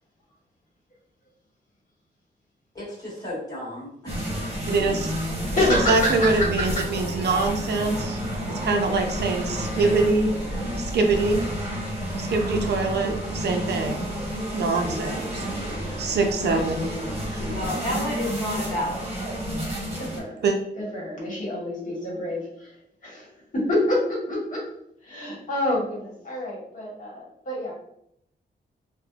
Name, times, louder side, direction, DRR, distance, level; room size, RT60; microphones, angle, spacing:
voice 1, 2.7-4.1 4.4-4.5 9.7-10.0 17.4-19.0, left 1 dB, 20° left, -7 dB, 1.4 m, -32 dB
sound 1, 4.1-20.2, equal, 35° right, 1.0 m, -30 dB
voice 2, 4.7-5.1 5.7-8.2 8.5-10.3 10.8-11.4 12.2-14.1 14.5-15.5 16.0-16.9 17.3-17.4 20.4-20.6, right 3 dB, 70° right, 3 dB, 0.5 m, -24 dB
voice 3, 5.5-6.8 7.1-7.2 8.4-8.5 12.5-13.2 14.4-14.6 14.8-15.0 15.4-17.7 20.0-20.4 20.8-22.7 23.0-24.7 25.0-27.7, left 1 dB, 45° left, -5 dB, 1.2 m, -29 dB
3.3 x 2.1 x 2.3 m, 0.74 s
wide cardioid pair, 125°, 18 cm